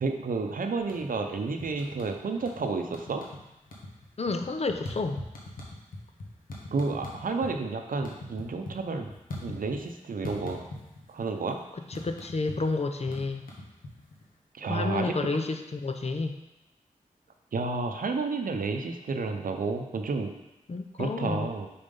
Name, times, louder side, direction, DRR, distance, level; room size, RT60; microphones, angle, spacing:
voice 1, 0.0-3.2 6.7-9.1 9.4-10.6 11.1-11.6 14.5-15.2 17.5-20.4 21.0-21.7, right 4 dB, 75° right, 5 dB, 0.7 m, -31 dB
sound 1, 0.8-1.3 1.6-2.6 2.9-3.4 3.7-7.5 7.8-9.9 10.2-11.1 11.4-14.2, left 1 dB, 90° left, 1.2 m, -41 dB
voice 2, 4.2-5.2 11.9-13.5 14.7-16.4 20.7-21.5, left 3 dB, 50° left, 6 dB, 0.6 m, -30 dB
5.3 x 4.3 x 5.3 m, 0.95 s
cardioid pair, 45°, 14 cm